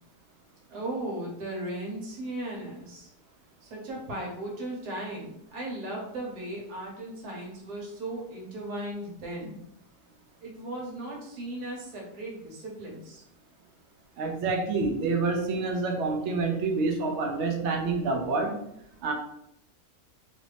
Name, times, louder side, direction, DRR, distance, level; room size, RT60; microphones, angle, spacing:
voice 1, 0.7-3.1 3.6-9.6 10.4-13.2, right 1 dB, 80° right, -2 dB, 1.5 m, -37 dB
voice 2, 14.2-18.6 19.0-19.1, right 3 dB, 65° right, 2 dB, 0.7 m, -27 dB
3.1 x 2.5 x 3.3 m, 0.76 s
omnidirectional pair, 1.7 m